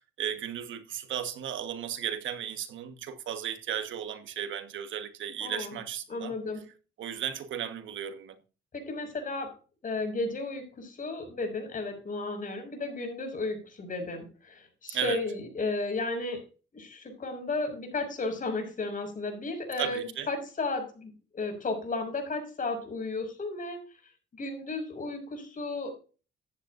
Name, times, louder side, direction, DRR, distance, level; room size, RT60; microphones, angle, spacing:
voice 1, 0.2-6.4 7.0-8.4 14.9-15.2 19.8-20.3, right 9 dB, 75° right, 1.5 m, -35 dB
voice 2, 5.4-5.8 6.1-6.6 8.7-9.5 9.8-16.4 16.7-23.8 24.4-25.9, left 3 dB, 45° left, 6.4 m, -34 dB
14.5 x 10.5 x 2.6 m
cardioid pair, 90°, 20 cm